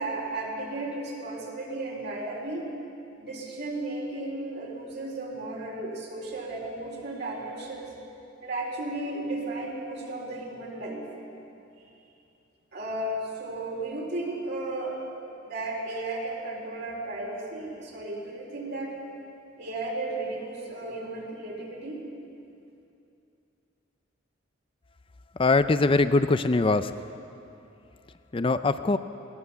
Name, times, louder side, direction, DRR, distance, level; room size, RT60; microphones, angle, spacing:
voice 1, 0.0-2.7 3.2-8.0 8.4-11.1 12.7-15.0 15.4-19.0 19.6-22.0, right 2 dB, 55° right, -2 dB, 4.3 m, -34 dB
voice 2, 25.4-26.9 28.3-29.0, left 3 dB, 25° left, 11 dB, 0.4 m, -22 dB
21.0 x 17.5 x 7.1 m, 2.7 s
head